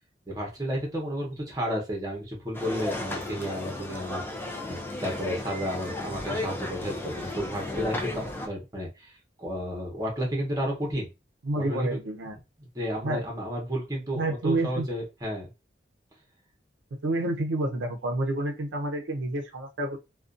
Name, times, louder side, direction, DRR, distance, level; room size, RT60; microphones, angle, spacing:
voice 1, 0.3-4.2 4.7-9.1 9.4-11.1 11.5-12.0 12.3-12.4 12.7-15.5, equal, 20° right, -1 dB, 0.8 m, -32 dB
sound 1, 2.5-8.5, left 2 dB, 10° left, 0.3 m, -34 dB
voice 2, 11.4-12.4 13.0-13.2 14.2-14.9 17.0-20.0, right 2 dB, 80° right, 3 dB, 0.5 m, -29 dB
2.4 x 2.2 x 2.4 m, 0.25 s
head